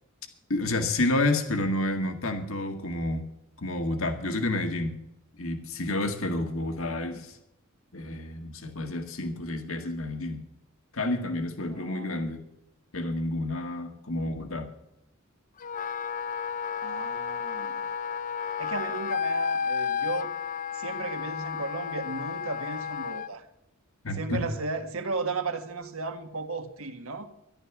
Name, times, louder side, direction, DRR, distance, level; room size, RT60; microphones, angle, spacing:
voice 1, 0.5-3.2 3.6-4.9 5.4-7.4 7.9-10.4 10.9-12.4 12.9-14.7 24.0-24.4, left 2 dB, 80° left, 1.9 m, -29 dB
voice 2, 11.7-12.3 16.8-17.9 18.6-20.3 20.7-23.4 24.1-27.3, right 3 dB, 85° right, 1.6 m, -35 dB
Wind instrument woodwind instrument, 15.6-23.3, left 7 dB, 40° left, 0.4 m, -32 dB
13.5 x 11.5 x 6.0 m
head